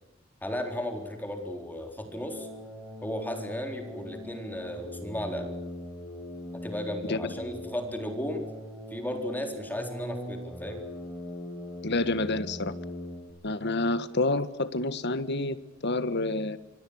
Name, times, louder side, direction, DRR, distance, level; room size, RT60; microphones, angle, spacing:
voice 1, 0.4-2.5 3.0-5.5 6.6-8.4 8.9-10.8, left 1 dB, 10° left, 5 dB, 3.8 m, -35 dB
sound 1, 2.0-13.3, left 1 dB, 5° right, 6.6 m, -41 dB
voice 2, 11.8-12.7 13.4-15.6 15.8-16.6, left 2 dB, 60° left, 14 dB, 1.6 m, -28 dB
26.5 x 24.5 x 6.5 m, 0.94 s
head